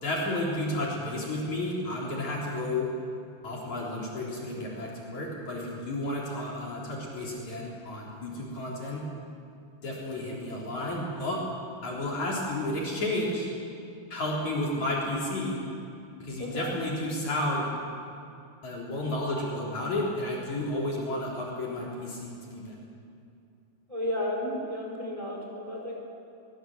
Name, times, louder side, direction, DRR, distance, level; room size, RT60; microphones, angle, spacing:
voice 1, 0.0-2.9 3.4-9.0 9.8-11.4 11.8-13.5 14.1-15.6 16.2-17.7 18.6-22.8, left 1 dB, 45° left, -3 dB, 4.8 m, -32 dB
voice 2, 16.4-16.8 23.9-26.0, left 1 dB, 5° right, -1 dB, 4.0 m, -33 dB
23.5 x 21.0 x 7.9 m, 2.5 s
omnidirectional pair, 5.1 m